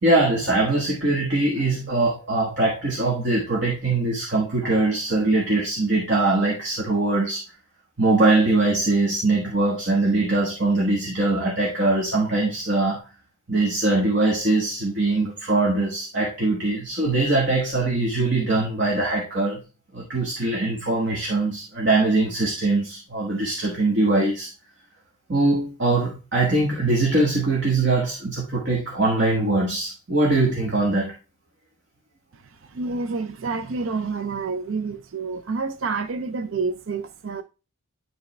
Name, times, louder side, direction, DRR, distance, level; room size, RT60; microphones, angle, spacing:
voice 1, 0.0-7.4 8.0-13.0 13.5-19.6 19.9-24.5 25.3-31.1, right 2 dB, 55° right, 1.4 m, -22 dB
voice 2, 32.7-37.4, right 4 dB, 75° right, 0.6 m, -28 dB
10.5 x 3.5 x 3.2 m
head